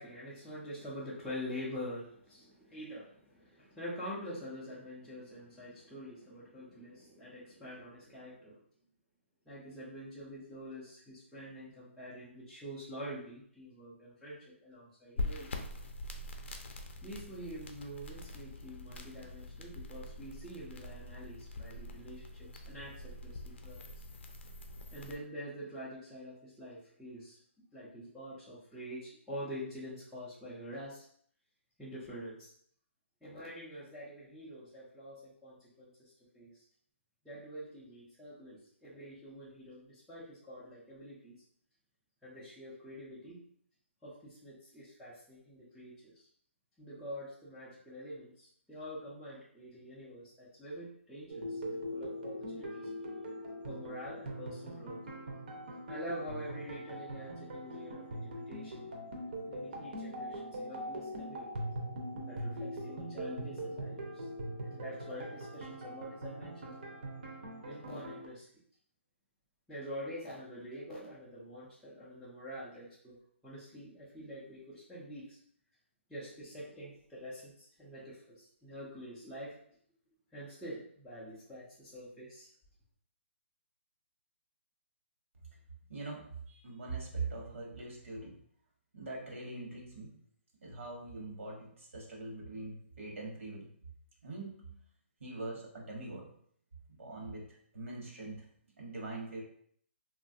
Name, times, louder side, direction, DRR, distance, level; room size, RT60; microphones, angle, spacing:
voice 1, 0.0-8.6 9.5-15.5 17.0-23.8 24.9-27.4 27.7-31.0 31.8-32.5 33.2-36.6 37.2-41.4 42.2-43.4 44.0-46.3 46.8-52.9 53.7-55.0 55.9-58.9 59.5-61.5 62.3-64.3 64.6-66.8 67.7-68.5 69.7-73.2 73.4-75.4 76.1-79.6 80.3-82.5, equal, ahead, -13 dB, 0.3 m, -46 dB
sound 1, 15.2-25.1, left 2 dB, 60° left, 0.5 m, -44 dB
sound 2, 51.3-68.3, equal, 45° right, 0.6 m, -41 dB
voice 2, 85.9-88.4 88.9-90.1 90.6-93.7 94.2-94.8 95.2-96.3 96.9-98.5 98.8-99.4, right 3 dB, 75° right, -1 dB, 1.0 m, -42 dB
3.0 x 2.3 x 2.5 m, 0.62 s
hypercardioid pair, 170°, 7 cm